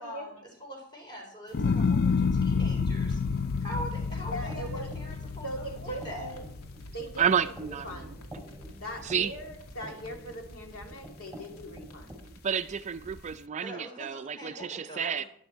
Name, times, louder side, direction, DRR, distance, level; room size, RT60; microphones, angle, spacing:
voice 1, 0.0-3.2 3.6-6.3 13.6-15.3, equal, 20° left, 4.4 m, -43 dB
sound 1, 1.5-7.9 8.3-8.9, left 5 dB, 45° left, 0.4 m, -29 dB
sound 2, 3.0-13.4, right 1 dB, 85° left, 2.2 m, -52 dB
sound 3, 3.7-12.3, right 1 dB, ahead, 2.9 m, -48 dB
voice 2, 4.3-4.9 5.4-6.4 6.9-7.5 7.8-8.3 8.8-12.3, equal, 70° left, 2.6 m, -40 dB
voice 3, 7.2-8.1 9.0-9.3 12.4-15.2, right 7 dB, 35° right, 0.4 m, -30 dB
12.5 x 11.0 x 4.5 m
head